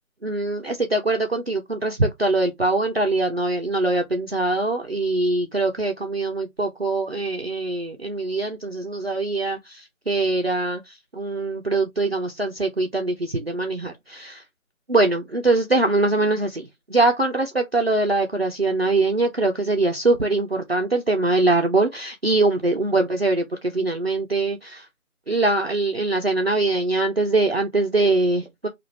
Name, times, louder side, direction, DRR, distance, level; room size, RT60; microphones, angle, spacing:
voice 1, 0.2-14.4 14.9-24.8 25.3-28.7, right 2 dB, 45° right, 0.6 m, -23 dB
4.7 x 2.5 x 2.7 m
figure-of-eight pair, 165°, 42 cm